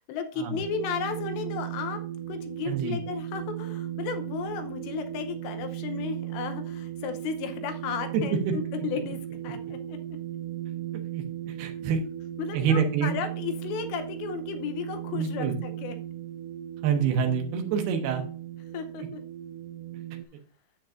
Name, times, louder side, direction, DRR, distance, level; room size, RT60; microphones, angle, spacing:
voice 1, 0.0-2.0 2.3-10.2 12.4-16.0 18.7-19.2, left 6 dB, 80° left, 8 dB, 2.9 m, -34 dB
sound 1, 0.5-20.3, right 12 dB, 90° right, 2.3 m, -36 dB
voice 2, 2.7-3.0 11.1-12.0 12.5-13.1 15.1-15.6 16.8-18.2, right 7 dB, 70° right, 4 dB, 2.8 m, -27 dB
10.0 x 8.4 x 2.5 m, 0.40 s
omnidirectional pair, 5.3 m